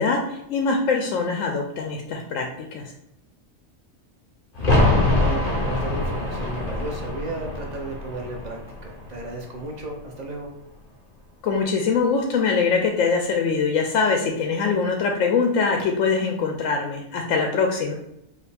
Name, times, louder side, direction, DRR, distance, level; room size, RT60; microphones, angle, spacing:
voice 1, 0.0-2.4 2.7-2.8 11.4-17.9, left 5 dB, 75° left, 2 dB, 0.9 m, -23 dB
sound 1, 4.5-10.1 10.4-10.5, left 2 dB, 40° left, 0.6 m, -24 dB
voice 2, 5.2-10.5, right 2 dB, 40° right, 0 dB, 0.7 m, -34 dB
4.9 x 2.5 x 3.3 m, 0.82 s
omnidirectional pair, 1.4 m